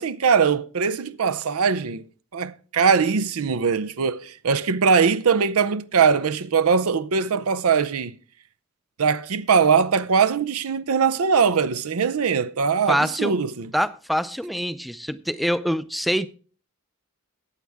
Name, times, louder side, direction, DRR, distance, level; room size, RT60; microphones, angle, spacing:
voice 1, 0.0-2.1 2.3-8.2 9.0-13.7, right 6 dB, 85° right, 0.6 m, -21 dB
voice 2, 12.9-13.4 13.7-16.3, equal, ahead, 0.4 m, -25 dB
14.5 x 9.4 x 3.5 m
head